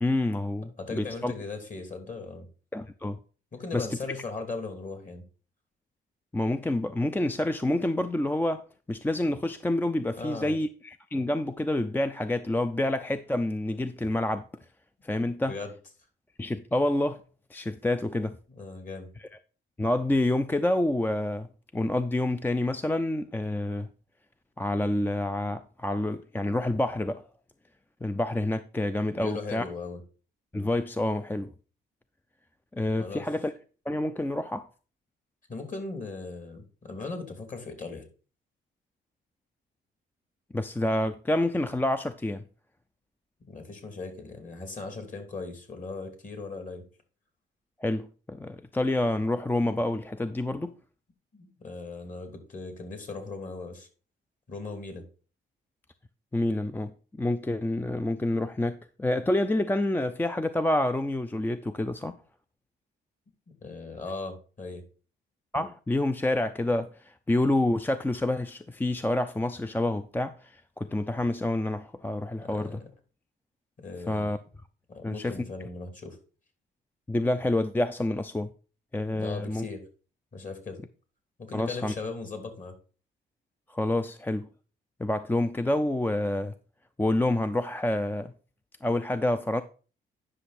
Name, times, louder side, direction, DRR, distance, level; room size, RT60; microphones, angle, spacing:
voice 1, 0.0-1.3 2.7-3.2 3.7-3.9 6.3-14.5 15.0-15.5 16.4-17.2 17.5-18.3 19.8-21.5 21.7-23.9 24.6-27.2 28.0-29.6 30.5-31.5 32.7-33.5 33.9-34.7 40.5-42.4 47.8-50.7 56.3-56.9 57.2-62.2 65.5-72.8 74.1-74.4 75.0-75.4 77.1-78.5 78.9-79.7 81.5-81.9 83.7-84.5 85.0-86.5 87.0-88.3 88.8-89.6, left 1 dB, 10° left, 0.5 m, -28 dB
voice 2, 0.8-2.5 3.5-5.2 10.2-10.6 15.4-15.7 18.5-19.1 29.1-30.0 33.0-33.3 35.5-38.0 43.5-46.8 51.3-53.9 54.5-55.0 63.5-64.8 72.4-72.8 73.8-74.3 74.9-76.2 79.2-79.8 80.3-80.8 81.4-82.7, left 3 dB, 40° left, 3.0 m, -38 dB
9.8 x 6.2 x 4.2 m
cardioid pair, 90°, 20 cm